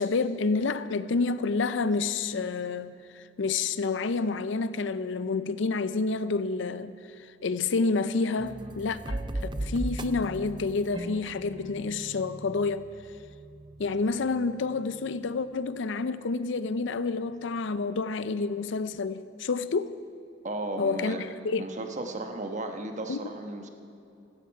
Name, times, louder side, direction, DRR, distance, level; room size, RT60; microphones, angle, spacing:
voice 1, 0.0-6.9 7.4-9.2 9.6-12.9 13.8-20.0 20.8-21.6 23.1-23.2, left 4 dB, 70° left, 0.5 m, -29 dB
sound 1, 8.4-15.2, right 1 dB, 25° right, 0.5 m, -38 dB
voice 2, 20.4-21.2 21.6-23.7, right 2 dB, 40° right, 1.2 m, -35 dB
17.0 x 13.5 x 4.7 m
head